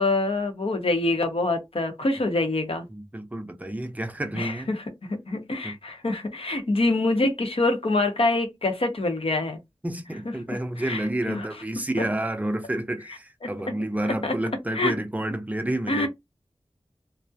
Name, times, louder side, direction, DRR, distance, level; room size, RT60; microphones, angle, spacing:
voice 1, 0.0-2.9 4.3-9.6 10.5-10.6 10.8-11.0 11.3-11.4 14.2-14.3 14.7-14.9 15.9-16.1, left 2 dB, 60° left, 0.7 m, -25 dB
voice 2, 2.9-4.7 5.6-5.8 9.8-16.1, right 1 dB, 15° right, 0.5 m, -29 dB
2.3 x 2.0 x 2.6 m
wide cardioid pair, 75°, 11 cm